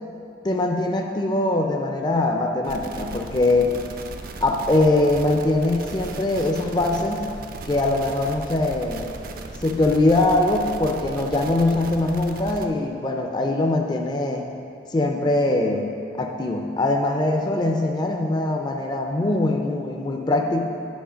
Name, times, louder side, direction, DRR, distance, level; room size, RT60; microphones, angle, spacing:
voice 1, 0.4-3.8 4.4-7.3 7.6-9.1 9.6-14.5 14.9-15.9 16.2-20.6, left 2 dB, 25° left, 2 dB, 0.4 m, -22 dB
sound 1, 2.6-12.7, right 3 dB, 50° right, 0.5 m, -37 dB
9.3 x 5.3 x 5.0 m, 2.6 s
head